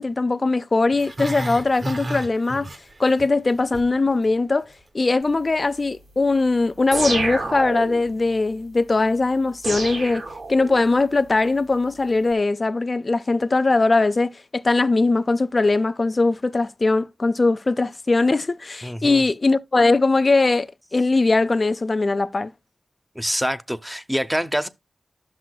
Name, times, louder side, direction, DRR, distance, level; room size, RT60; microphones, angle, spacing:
voice 1, 0.0-2.7 3.0-4.7 4.9-10.2 10.5-22.5, left 3 dB, 45° left, 0.4 m, -20 dB
Growling, 0.9-3.2 3.5-3.9 4.3-4.4, right 1 dB, 50° right, 1.1 m, -31 dB
sound 1, 6.9-8.1 9.6-10.9, right 2 dB, 80° right, 2.2 m, -28 dB
voice 2, 18.8-19.2 23.2-24.7, equal, 5° right, 0.5 m, -25 dB
11.5 x 6.2 x 2.2 m
wide cardioid pair, 60°, 0 cm